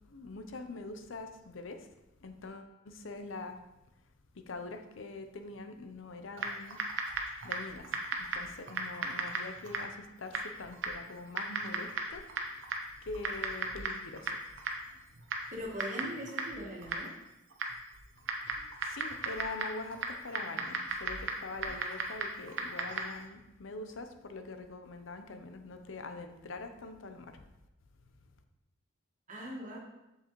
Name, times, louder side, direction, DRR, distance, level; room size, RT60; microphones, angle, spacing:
voice 1, 0.1-1.9 2.2-3.6 4.3-6.8 7.4-8.0 8.3-12.7 13.0-14.4 18.8-27.4, left 3 dB, 85° left, 7 dB, 0.7 m, -44 dB
Typing, 6.4-23.3, right 3 dB, 70° right, 0.9 m, -38 dB
voice 2, 15.5-17.1 29.3-29.8, equal, 40° right, -2 dB, 1.7 m, -40 dB
7.6 x 6.6 x 3.1 m, 0.93 s
head